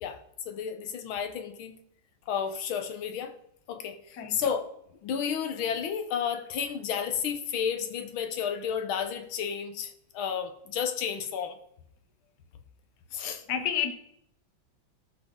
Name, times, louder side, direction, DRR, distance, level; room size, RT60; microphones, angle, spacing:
voice 1, 0.5-1.8 2.3-3.3 3.7-4.7 5.0-11.6 13.1-13.4, left 7 dB, 85° left, 1.8 m, -32 dB
voice 2, 4.1-4.4 13.5-13.9, left 8 dB, 60° left, 1.5 m, -29 dB
17.5 x 6.1 x 3.7 m
omnidirectional pair, 2.2 m